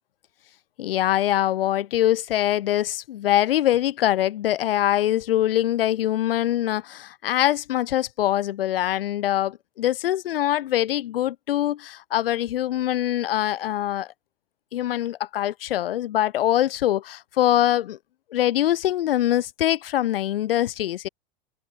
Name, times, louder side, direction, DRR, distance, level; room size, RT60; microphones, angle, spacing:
voice 1, 0.8-14.1 14.7-18.0 18.3-21.1, left 12 dB, 70° left, 2.2 m, -23 dB
hypercardioid pair, 105°, 29 cm